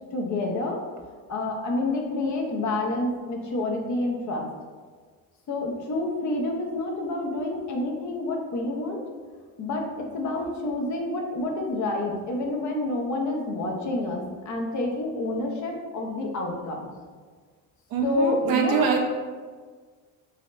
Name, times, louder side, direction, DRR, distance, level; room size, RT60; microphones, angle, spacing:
voice 1, 0.1-0.8 1.3-4.4 5.5-9.0 9.6-16.9 18.0-18.9, left 2 dB, 45° left, 1 dB, 0.8 m, -28 dB
voice 2, 17.9-19.0, right 5 dB, 60° right, 1 dB, 0.7 m, -24 dB
4.1 x 3.1 x 2.5 m, 1.5 s
supercardioid pair, 75°, 40 cm